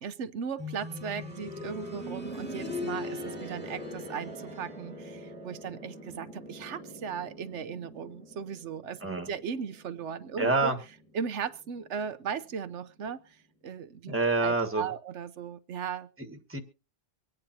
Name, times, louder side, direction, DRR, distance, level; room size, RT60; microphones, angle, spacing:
voice 1, 0.0-10.7 11.1-13.4 13.6-14.1 14.4-16.1, right 7 dB, 85° right, 12 dB, 1.1 m, -37 dB
sound 1, 0.6-11.4 12.7-12.8, left 1 dB, 10° left, 2.0 m, -41 dB
voice 2, 10.4-10.8 14.1-14.9 16.3-16.6, right 3 dB, 10° right, 6 dB, 1.5 m, -27 dB
25.0 x 9.2 x 2.8 m, 0.30 s
omnidirectional pair, 1.2 m